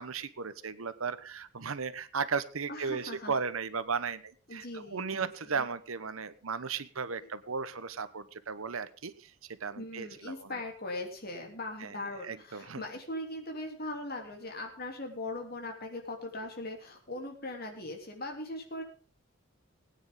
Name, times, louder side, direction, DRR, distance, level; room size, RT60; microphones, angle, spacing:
voice 1, 0.0-4.2 4.5-10.6 11.8-11.9 12.2-12.8, right 5 dB, 80° right, 13 dB, 1.0 m, -36 dB
voice 2, 2.7-3.3 4.5-5.7 9.8-18.8, left 2 dB, 45° left, 2 dB, 3.3 m, -40 dB
19.5 x 9.6 x 3.8 m, 0.39 s
head